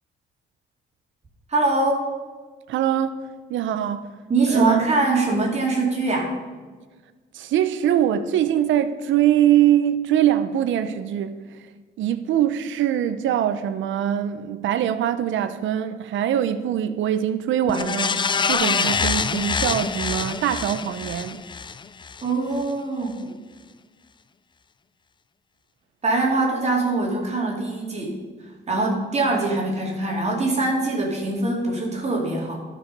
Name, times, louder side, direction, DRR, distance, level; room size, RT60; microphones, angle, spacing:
voice 1, 1.5-2.1 4.3-6.3 22.2-23.3 26.0-28.2 28.7-32.6, right 3 dB, 35° right, 2.4 m, -23 dB
voice 2, 2.7-4.1 4.5-4.8 7.3-11.4 12.0-18.2 18.5-21.4, right 10 dB, 75° right, 0.6 m, -23 dB
sound 1, 17.7-22.2 22.6-22.7, left 5 dB, 25° left, 0.4 m, -25 dB
12.0 x 5.1 x 5.3 m
cardioid pair, 90°, 20 cm